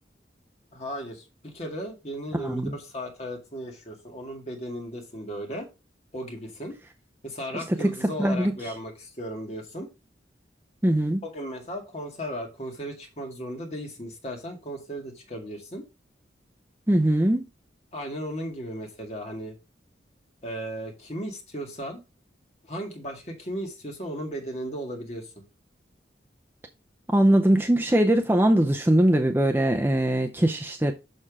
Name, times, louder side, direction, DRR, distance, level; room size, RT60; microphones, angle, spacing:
voice 1, 0.7-5.7 6.1-6.8 7.2-9.9 11.2-15.9 17.9-19.5 20.4-22.0 22.7-25.4, equal, 35° left, 2.0 m, -36 dB
voice 2, 2.4-2.7 7.8-8.7 10.8-11.2 16.9-17.4 27.1-30.9, right 1 dB, 10° right, 0.5 m, -21 dB
6.6 x 6.2 x 3.6 m
head